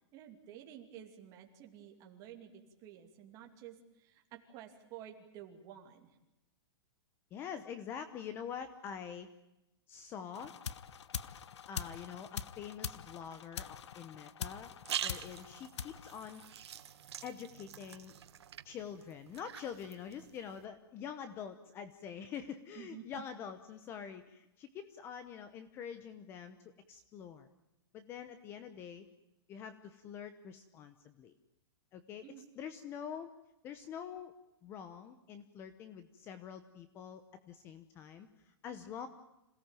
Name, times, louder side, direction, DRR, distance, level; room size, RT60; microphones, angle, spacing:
voice 1, 0.1-6.2 22.7-23.0 32.2-32.5, right 10 dB, 25° right, 3 dB, 2.7 m, -52 dB
voice 2, 7.3-9.3 9.9-10.5 11.7-14.7 15.0-16.4 17.2-18.1 18.6-27.5 27.9-29.1 29.5-31.3 31.9-32.3 32.6-33.3 33.6-34.3 34.6-39.1, left 8 dB, 15° left, 11 dB, 0.9 m, -46 dB
sound 1, 10.3-16.9, left 8 dB, 85° left, 1.1 m, -44 dB
sound 2, 14.5-20.6, right 9 dB, 75° right, 1.8 m, -45 dB
27.5 x 17.5 x 9.1 m, 0.93 s
hypercardioid pair, 175°, 14 cm